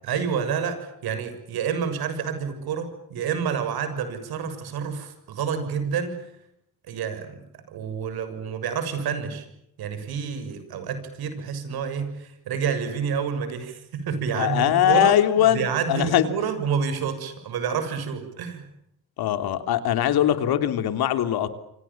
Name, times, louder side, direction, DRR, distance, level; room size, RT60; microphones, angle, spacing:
voice 1, 0.0-6.2 6.9-7.4 7.7-9.5 9.8-15.1 15.5-18.7, right 6 dB, 85° right, 9 dB, 7.0 m, -28 dB
voice 2, 14.3-16.3 19.2-21.5, left 11 dB, 85° left, 9 dB, 3.2 m, -21 dB
29.0 x 26.5 x 7.3 m, 0.77 s
cardioid pair, 75°, 36 cm